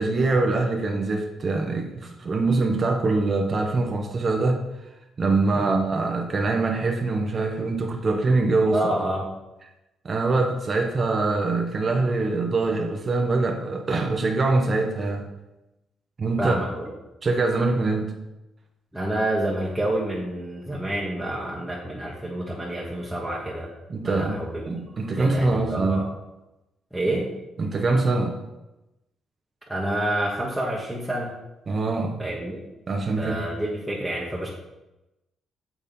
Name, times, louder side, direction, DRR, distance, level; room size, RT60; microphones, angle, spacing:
voice 1, 0.0-4.6 5.2-8.8 10.0-15.3 16.2-16.6 17.2-18.2 23.9-26.1 27.6-28.4 31.7-32.2 32.9-33.4, right 3 dB, 35° right, 2 dB, 0.9 m, -24 dB
voice 2, 8.7-9.3 16.4-16.9 18.9-23.7 24.0-24.7 25.2-26.1 26.9-27.3 29.7-31.4 32.2-32.6 33.2-34.5, right 1 dB, 5° right, -5 dB, 1.4 m, -28 dB
7.0 x 4.4 x 5.3 m, 0.98 s
cardioid pair, 90°, 0 cm